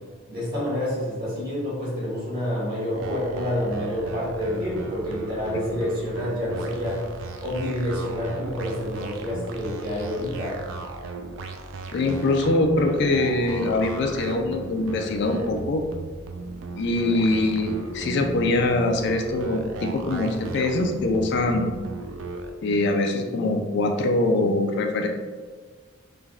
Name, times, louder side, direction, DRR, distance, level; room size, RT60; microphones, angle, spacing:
voice 1, 0.3-7.0 7.4-10.6, left 1 dB, 50° right, -7 dB, 1.3 m, -28 dB
sound 1, 2.9-22.5, right 3 dB, 80° right, 0.3 m, -36 dB
voice 2, 11.9-15.8 16.7-21.7 22.6-25.1, left 2 dB, 60° left, 4 dB, 0.3 m, -23 dB
3.3 x 2.2 x 2.3 m, 1.5 s
head